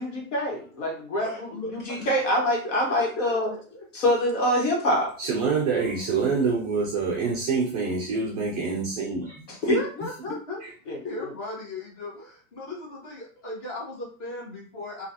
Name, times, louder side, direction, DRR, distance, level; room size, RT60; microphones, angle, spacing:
voice 1, 0.0-3.5 3.9-5.1 9.5-9.8 10.9-11.0, equal, 60° left, 1.4 m, -25 dB
voice 2, 1.2-2.1 2.6-3.8 9.7-15.1, left 2 dB, 30° left, 1.4 m, -37 dB
voice 3, 5.2-9.4, right 4 dB, 30° right, 0.4 m, -26 dB
3.1 x 2.3 x 2.7 m
hypercardioid pair, 145°, 43 cm